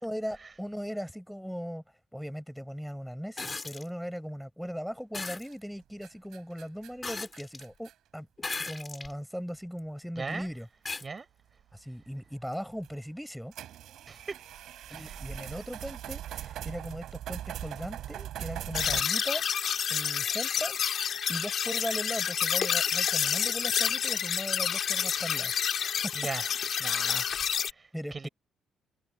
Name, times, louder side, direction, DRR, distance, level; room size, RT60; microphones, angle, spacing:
voice 1, 0.0-1.8 2.1-8.3 8.7-10.7 11.7-13.5 14.9-19.5 19.9-20.8 21.1-25.5 25.8-26.1 27.9-28.3, equal, ahead, 5.2 m, -38 dB
sound 1, 3.4-3.9 5.1-5.5 7.0-7.6 8.4-9.1 9.8-9.9 10.9-11.1 12.5-12.6, left 3 dB, 25° left, 3.5 m, -37 dB
sound 2, 5.4-5.7 6.0-7.9 8.8-8.9 9.5-9.6 10.9-11.0 12.8-12.9 13.5-19.0, right 12 dB, 80° right, 3.7 m, -40 dB
voice 2, 10.2-10.5 11.0-11.3 14.1-14.4 26.1-26.5 26.8-28.3, right 4 dB, 30° right, 5.0 m, -39 dB
sound 3, 18.7-27.7, left 8 dB, 60° left, 2.4 m, -29 dB
cardioid pair, 90°, 0 cm